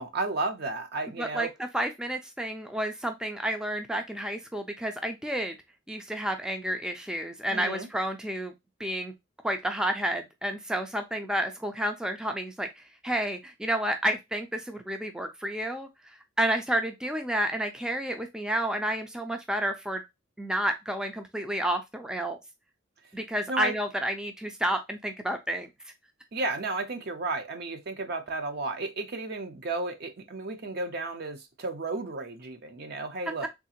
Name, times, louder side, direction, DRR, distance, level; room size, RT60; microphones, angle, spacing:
voice 1, 0.0-1.5 7.5-7.9 23.5-23.7 26.3-33.5, right 3 dB, 55° right, 0.6 m, -33 dB
voice 2, 1.2-1.5 1.7-5.6 5.9-8.5 8.8-9.1 9.4-20.0 20.4-22.4 23.1-25.7 33.4-33.5, right 1 dB, 5° right, 0.3 m, -30 dB
3.6 x 2.4 x 2.8 m
head